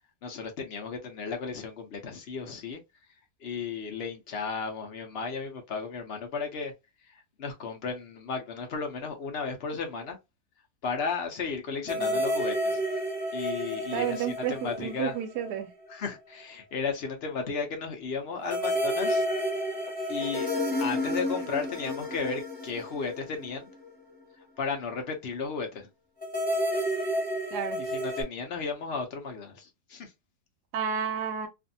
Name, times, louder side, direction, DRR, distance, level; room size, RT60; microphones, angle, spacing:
voice 1, 0.2-2.8 3.4-6.7 7.1-10.2 10.8-12.8 13.3-15.1 15.9-19.2 20.1-20.5 20.8-23.7 24.6-25.9 27.9-30.1, left 5 dB, 60° left, 0.7 m, -34 dB
sound 1, 11.9-15.6 15.9-16.0 18.5-23.9 26.2-28.2, equal, 5° left, 1.0 m, -30 dB
voice 2, 13.7-15.7 27.5-27.8 30.7-31.5, right 8 dB, 85° right, 1.1 m, -31 dB
2.5 x 2.5 x 2.6 m
omnidirectional pair, 1.7 m